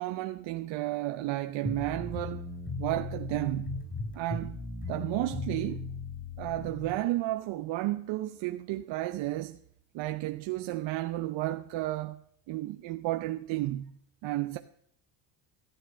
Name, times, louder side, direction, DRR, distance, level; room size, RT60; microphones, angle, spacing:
voice 1, 0.0-2.5 2.8-3.9 4.1-4.6 4.9-5.9 6.4-9.6 9.9-12.2 12.5-14.6, right 16 dB, 75° right, 0.8 m, -32 dB
sound 1, 1.6-7.0, left 3 dB, 25° left, 4.8 m, -37 dB
14.5 x 9.1 x 6.2 m
cardioid pair, 115°, 46 cm